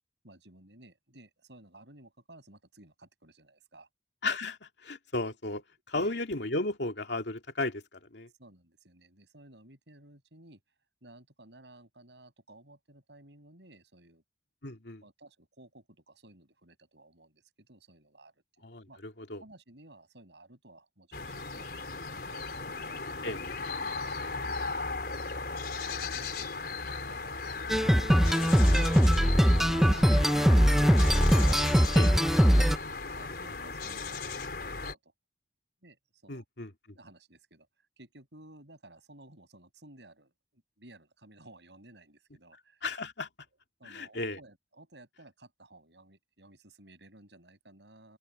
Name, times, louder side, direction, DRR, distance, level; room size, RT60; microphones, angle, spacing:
voice 1, 0.2-3.9 5.9-6.2 8.4-10.6 11.0-14.2 15.0-19.0 19.4-23.4 23.8-25.5 25.9-26.3 27.1-27.6 28.2-32.2 33.1-35.1 35.8-36.4 37.0-37.7 38.0-42.8 43.8-48.2, right 2 dB, 75° right, 7.8 m, -55 dB
voice 2, 4.2-8.3 14.6-15.0 18.6-19.4 23.2-23.4 32.0-32.1 36.3-37.0 42.8-43.3 43.8-44.4, left 2 dB, 75° left, 2.4 m, -35 dB
sound 1, 21.1-34.9, left 4 dB, 55° left, 4.7 m, -36 dB
sound 2, 27.7-32.8, equal, ahead, 0.6 m, -22 dB
open air
head